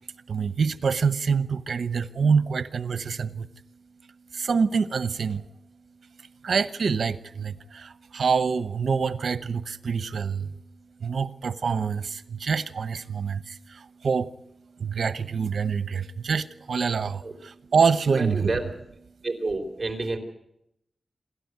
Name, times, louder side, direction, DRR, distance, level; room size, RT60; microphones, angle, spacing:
voice 1, 0.3-3.5 4.3-5.5 6.4-10.6 11.0-14.4 14.8-18.5, right 5 dB, 75° right, 0.9 m, -26 dB
voice 2, 18.1-18.6 19.2-20.2, right 3 dB, 25° right, 3.8 m, -29 dB
27.5 x 13.0 x 9.5 m
wide cardioid pair, 135°, 0 cm